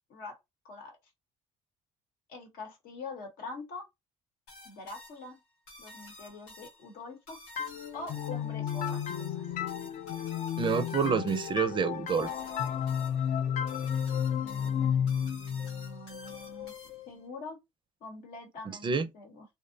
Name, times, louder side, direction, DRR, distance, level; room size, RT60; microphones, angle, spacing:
voice 1, 0.6-1.0 2.3-3.9 4.6-5.4 5.8-7.4 7.9-9.5 14.3-16.7 17.1-17.6 18.0-19.4, left 3 dB, 70° left, 1.0 m, -45 dB
sound 1, 4.5-17.2, left 1 dB, 90° left, 1.1 m, -52 dB
sound 2, 7.6-17.1, left 8 dB, 55° left, 0.4 m, -33 dB
voice 2, 10.6-12.3 18.7-19.1, right 6 dB, 30° right, 0.4 m, -28 dB
2.6 x 2.0 x 2.6 m
supercardioid pair, 75°, 16 cm